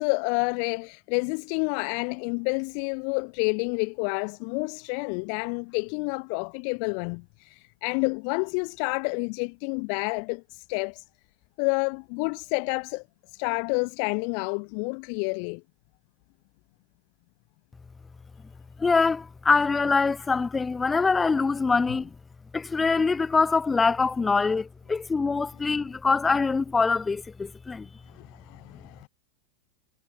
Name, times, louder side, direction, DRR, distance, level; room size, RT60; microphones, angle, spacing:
voice 1, 0.0-11.0 11.6-15.6 28.1-29.1, left 40 dB or more, 45° left, 0.9 m, -29 dB
voice 2, 18.8-22.1 22.5-27.9, left 4 dB, 15° left, 0.6 m, -24 dB
figure-of-eight pair, 90°, 0 cm